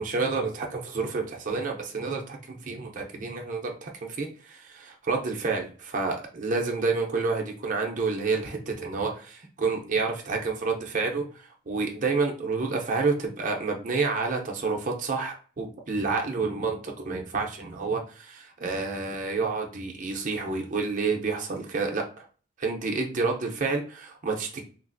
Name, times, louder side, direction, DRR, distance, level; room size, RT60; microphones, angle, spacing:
voice 1, 0.0-22.2 22.6-24.6, right 4 dB, 35° right, 1 dB, 0.5 m, -29 dB
3.2 x 2.4 x 2.5 m, 0.40 s
head